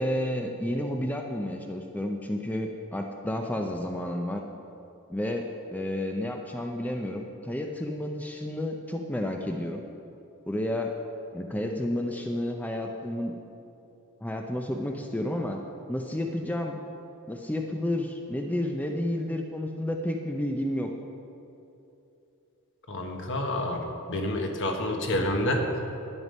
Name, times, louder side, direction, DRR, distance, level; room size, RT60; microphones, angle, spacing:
voice 1, 0.0-4.4 5.1-9.8 10.5-10.9 11.3-13.4 14.2-15.6 15.9-16.8 17.3-20.9, left 1 dB, 5° left, 3 dB, 0.5 m, -31 dB
voice 2, 22.9-25.8, left 1 dB, 60° left, 3 dB, 1.3 m, -28 dB
11.0 x 9.0 x 5.3 m, 2.8 s
head